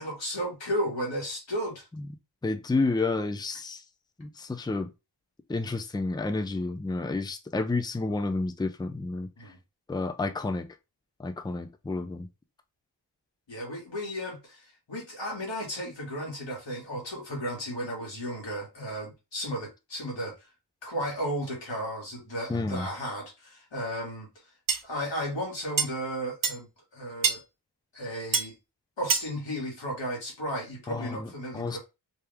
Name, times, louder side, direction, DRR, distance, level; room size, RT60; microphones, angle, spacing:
voice 1, 0.0-1.9 9.4-9.6 13.5-14.6 14.9-20.3 20.8-24.3 24.8-27.4 27.9-28.5 29.0-31.8, equal, 80° left, 2.0 m, -34 dB
voice 2, 2.4-3.8 4.2-4.9 5.5-9.3 9.9-10.7 11.2-12.3 22.5-22.9 30.9-31.8, left 3 dB, 10° left, 0.5 m, -30 dB
sound 1, 24.7-24.8 25.8-25.9 26.4-26.6 27.2-27.4 28.3-28.5 29.1-29.3, right 5 dB, 50° right, 0.7 m, -25 dB
3.5 x 2.7 x 3.4 m
wide cardioid pair, 60°, 43 cm